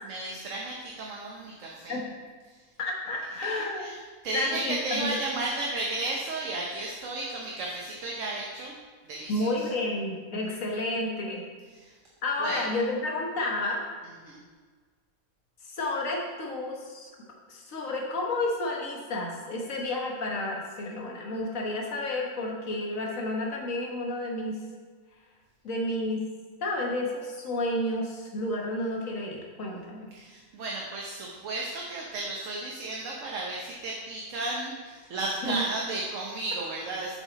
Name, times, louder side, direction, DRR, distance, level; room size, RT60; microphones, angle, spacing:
voice 1, 0.0-2.0 2.5-2.6 3.4-4.0 4.2-8.8 9.0-9.7 11.7-12.0 12.4-12.6 14.2-14.4 30.1-37.2, right 2 dB, 65° right, -2 dB, 1.2 m, -34 dB
voice 2, 2.8-3.9 4.3-5.2 9.3-11.4 12.2-13.8 15.6-17.1 17.5-24.6 25.6-26.2 26.6-30.1 35.4-35.6, left 2 dB, 65° left, -1 dB, 1.6 m, -31 dB
7.3 x 6.4 x 4.0 m, 1.5 s
omnidirectional pair, 1.5 m